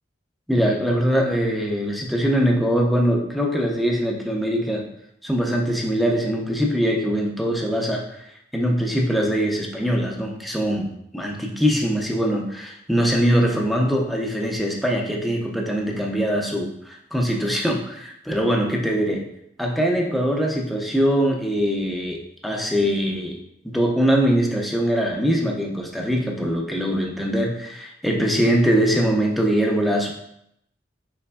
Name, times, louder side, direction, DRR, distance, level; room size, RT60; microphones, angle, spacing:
voice 1, 0.5-4.8 5.2-8.3 8.5-10.9 11.1-19.2 19.6-30.1, equal, ahead, 0 dB, 0.4 m, -22 dB
4.2 x 3.2 x 2.2 m, 0.76 s
head